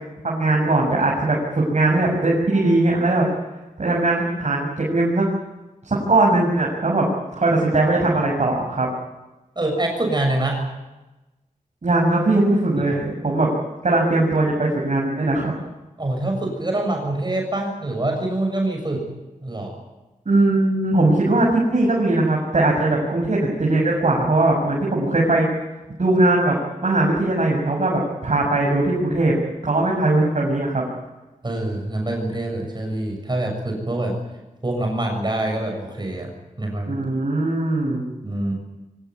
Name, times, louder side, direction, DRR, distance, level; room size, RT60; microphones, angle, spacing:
voice 1, 0.2-3.2 3.8-5.3 5.8-7.1 7.3-8.9 11.8-13.5 13.8-15.5 20.2-25.5 26.0-26.6 26.8-29.3 29.6-30.8 36.9-38.0, right 2 dB, 55° right, -2 dB, 6.9 m, -20 dB
voice 2, 9.6-10.6 16.0-19.0 19.4-19.8 31.4-34.2 34.6-36.3 36.6-36.9 38.2-38.5, right 1 dB, 30° right, 2 dB, 6.9 m, -25 dB
25.0 x 18.0 x 9.7 m, 1.1 s
wide cardioid pair, 80°, 14 cm